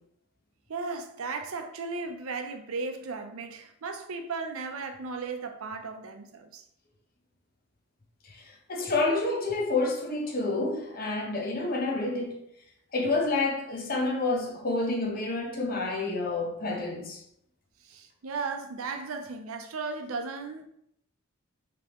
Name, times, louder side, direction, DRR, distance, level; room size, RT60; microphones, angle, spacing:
voice 1, 0.7-6.6 17.8-20.7, right 4 dB, 90° right, 0.6 m, -36 dB
voice 2, 8.2-12.4 12.9-17.2, left 3 dB, 45° left, 0.9 m, -29 dB
5.2 x 3.3 x 2.9 m
head